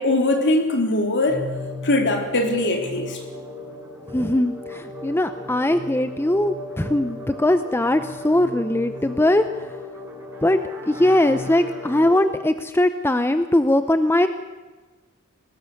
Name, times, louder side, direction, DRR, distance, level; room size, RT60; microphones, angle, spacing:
voice 1, 0.0-1.4 1.8-3.2, left 2 dB, 55° left, 3 dB, 3.6 m, -21 dB
sound 1, 1.3-12.1, left 2 dB, 15° right, 6.5 m, -36 dB
voice 2, 4.1-9.7 10.4-14.3, left 1 dB, 10° left, 10 dB, 0.7 m, -20 dB
21.5 x 19.5 x 6.7 m, 1.2 s
head